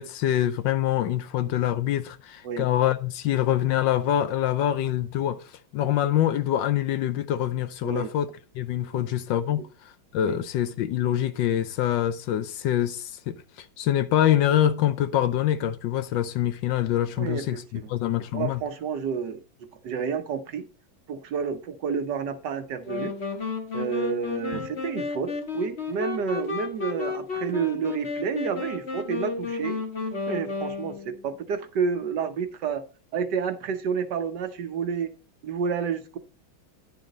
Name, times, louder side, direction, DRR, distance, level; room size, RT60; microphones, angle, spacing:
voice 1, 0.0-8.3 8.6-18.6 24.5-24.6, left 11 dB, 75° left, 1.3 m, -25 dB
voice 2, 17.2-17.9 18.3-20.6 21.1-23.1 23.7-29.8 30.3-32.8 33.1-35.1 35.4-36.2, right 6 dB, 65° right, 1.4 m, -30 dB
sound 1, 22.8-31.3, left 4 dB, 35° left, 1.6 m, -32 dB
10.0 x 7.0 x 3.9 m
omnidirectional pair, 2.2 m